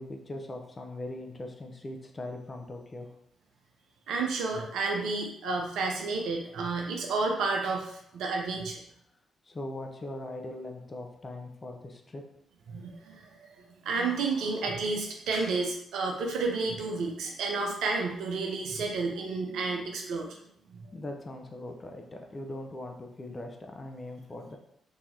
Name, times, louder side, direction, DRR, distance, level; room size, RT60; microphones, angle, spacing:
voice 1, 0.0-3.1 9.5-12.2 20.9-24.6, left 1 dB, 35° left, 3 dB, 0.7 m, -40 dB
voice 2, 4.1-8.8 12.7-20.3 20.7-20.9, right 3 dB, 70° right, 1 dB, 0.6 m, -31 dB
3.9 x 2.8 x 2.7 m, 0.72 s
hypercardioid pair, 40°, 0 cm